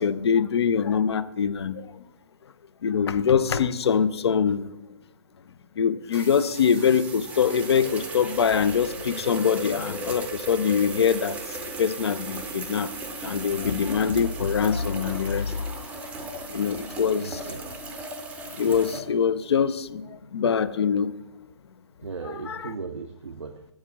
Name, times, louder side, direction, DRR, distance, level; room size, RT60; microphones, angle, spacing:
voice 1, 0.0-1.8 2.8-4.7 5.8-11.4 11.8-12.9 13.2-15.5 16.5-17.4 18.6-20.0 20.3-21.1 22.5-22.7, left 7 dB, 60° left, 0.5 m, -23 dB
sound 1, 6.1-19.0, right 2 dB, 10° right, 0.6 m, -36 dB
voice 2, 17.2-17.6 22.0-23.7, right 4 dB, 85° right, 0.5 m, -37 dB
7.4 x 4.8 x 7.1 m
figure-of-eight pair, 130°, 15 cm